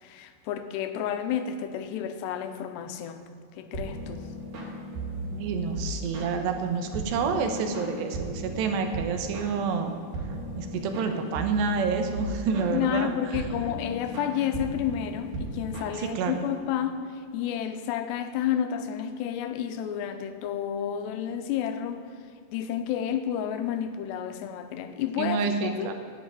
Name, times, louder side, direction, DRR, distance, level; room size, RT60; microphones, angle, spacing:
voice 1, 0.0-3.2 3.6-4.2 12.7-17.1 17.3-22.0 22.5-25.9, left 9 dB, 85° left, 8 dB, 2.9 m, -30 dB
sound 1, 3.7-16.5, right 1 dB, 55° right, 3.8 m, -36 dB
voice 2, 5.2-9.9 10.6-13.4 16.0-16.5 25.2-25.9, right 5 dB, 80° right, 6 dB, 3.2 m, -28 dB
10.0 x 8.9 x 8.9 m, 2.3 s
omnidirectional pair, 4.9 m